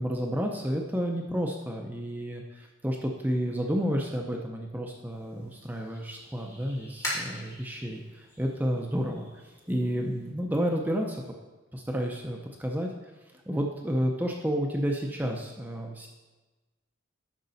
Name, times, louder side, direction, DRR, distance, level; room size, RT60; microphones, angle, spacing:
voice 1, 0.0-9.3 9.7-11.2 11.7-12.9 13.5-16.1, equal, 10° right, 1 dB, 0.6 m, -30 dB
sound 1, 5.1-10.3, left 1 dB, 15° left, 2.7 m, -42 dB
10.5 x 6.6 x 4.0 m, 1.2 s
head